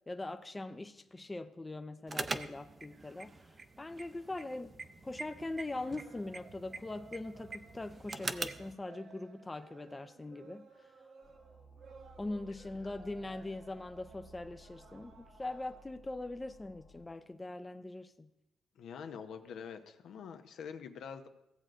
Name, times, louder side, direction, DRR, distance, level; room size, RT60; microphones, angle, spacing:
voice 1, 0.0-4.8 5.0-10.9 12.2-18.3, left 2 dB, 20° left, 0.5 m, -42 dB
sound 1, 2.1-8.7, right 3 dB, 35° right, 0.5 m, -43 dB
sound 2, 5.4-15.9, right 5 dB, 55° right, 1.0 m, -58 dB
sound 3, 11.2-17.1, equal, 35° left, 1.2 m, -58 dB
voice 2, 18.8-21.3, left 6 dB, 70° left, 0.7 m, -45 dB
16.0 x 7.7 x 2.5 m
cardioid pair, 90°, 0 cm